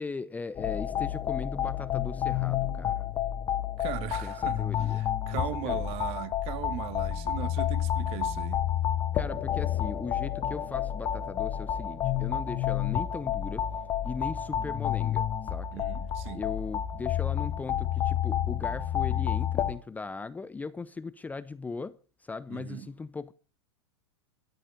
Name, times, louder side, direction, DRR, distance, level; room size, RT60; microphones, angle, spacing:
voice 1, 0.0-3.1 4.2-5.8 9.1-13.6 14.0-15.8 16.3-22.0 22.2-23.3, left 4 dB, 10° left, 0.5 m, -38 dB
sound 1, 0.6-19.7, left 10 dB, 30° left, 1.2 m, -30 dB
voice 2, 3.8-8.6 15.7-16.4 22.5-22.9, right 13 dB, 45° right, 1.4 m, -38 dB
13.0 x 10.0 x 5.3 m
hypercardioid pair, 110°, 14 cm